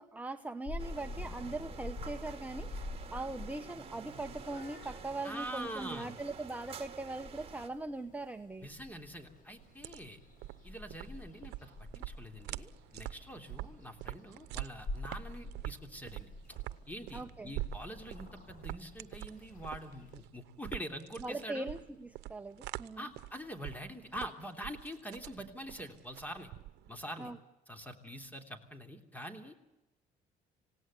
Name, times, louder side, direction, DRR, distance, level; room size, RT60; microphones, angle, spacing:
voice 1, 0.0-8.7 17.1-17.5 21.2-23.1 27.2-27.4, right 2 dB, 10° right, 6 dB, 0.9 m, -41 dB
Purr / Meow, 0.7-20.2, left 2 dB, 50° left, 7.3 m, -48 dB
sound 1, 0.8-7.7, right 6 dB, 35° right, 2.7 m, -49 dB
voice 2, 5.2-6.1 8.6-10.2 10.6-16.6 16.9-21.7 23.0-26.5 26.9-27.3 27.7-29.6, equal, 10° left, 6 dB, 3.3 m, -45 dB
sound 2, 9.6-27.0, right 17 dB, 85° right, 0.8 m, -45 dB
27.0 x 18.0 x 8.3 m, 0.98 s
cardioid pair, 110°, 17 cm